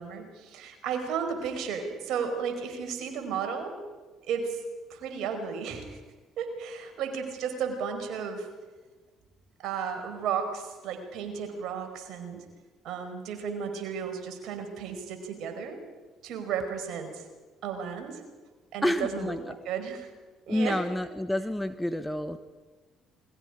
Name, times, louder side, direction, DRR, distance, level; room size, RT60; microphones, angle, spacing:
voice 1, 0.0-3.8 4.3-4.6 4.9-5.9 6.4-8.5 9.6-12.4 12.8-15.8 16.2-17.2 17.6-18.2 18.7-19.3 19.6-20.1 20.5-20.8, right 6 dB, 55° right, 4 dB, 5.0 m, -33 dB
voice 2, 18.8-19.6 20.5-22.4, left 1 dB, 5° left, 9 dB, 1.4 m, -29 dB
29.0 x 22.0 x 5.1 m, 1.3 s
figure-of-eight pair, 50°, 0 cm